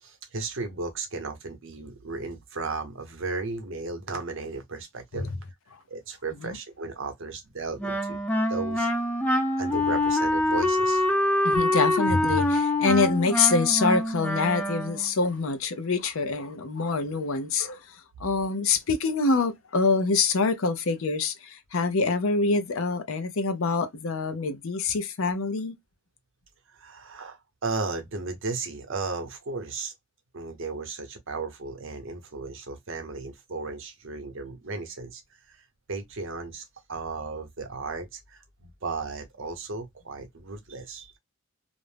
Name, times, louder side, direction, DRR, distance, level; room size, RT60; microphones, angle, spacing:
voice 1, 0.0-5.3 5.9-8.2 8.5-8.9 9.6-11.0 26.7-29.9 30.3-35.2 35.5-35.6 35.9-36.6 36.9-41.2, right 3 dB, 55° right, 0.8 m, -35 dB
Wind instrument woodwind instrument, 7.8-15.1, left 1 dB, 5° left, 0.5 m, -25 dB
voice 2, 11.4-25.8, left 4 dB, 65° left, 0.5 m, -25 dB
2.5 x 2.0 x 3.2 m
head